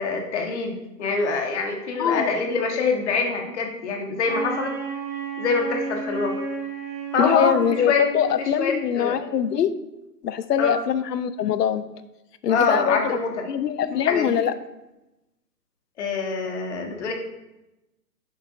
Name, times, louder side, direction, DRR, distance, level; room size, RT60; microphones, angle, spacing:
voice 1, 0.0-4.8 5.4-6.3 7.1-8.0 8.4-9.2 10.6-10.7 12.5-13.5 13.9-14.4 16.0-17.1, left 4 dB, 45° left, 2 dB, 1.4 m, -25 dB
Wind instrument woodwind instrument, 4.2-8.6, right 5 dB, 5° right, 2.9 m, -32 dB
voice 2, 7.2-9.7 10.2-11.8 12.4-13.2 13.5-14.5, left 8 dB, 70° left, 12 dB, 0.7 m, -23 dB
9.9 x 7.1 x 2.6 m, 0.95 s
hypercardioid pair, 160°, 50 cm